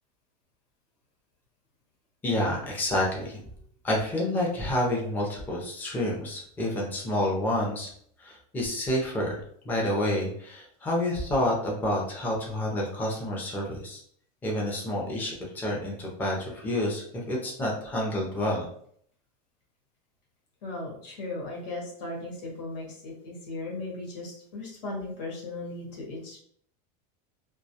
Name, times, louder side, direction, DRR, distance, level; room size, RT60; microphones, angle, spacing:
voice 1, 2.2-3.4 3.8-7.9 8.2-14.0 14.4-18.7, left 1 dB, 10° left, -3 dB, 0.4 m, -29 dB
voice 2, 20.6-26.4, left 2 dB, 90° left, -3 dB, 1.2 m, -37 dB
2.3 x 2.2 x 2.7 m, 0.63 s
supercardioid pair, 155°, 21 cm